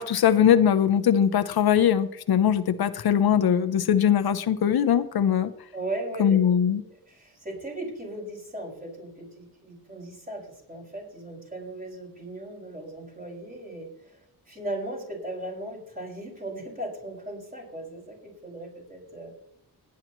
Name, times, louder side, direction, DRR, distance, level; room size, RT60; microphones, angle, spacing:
voice 1, 0.0-5.5 6.2-6.8, left 9 dB, 75° left, 10 dB, 0.7 m, -21 dB
voice 2, 5.7-6.4 6.6-6.8 7.1-19.3, right 1 dB, 20° right, -2 dB, 5.8 m, -37 dB
18.5 x 10.5 x 3.0 m, 0.74 s
wide cardioid pair, 145°, 38 cm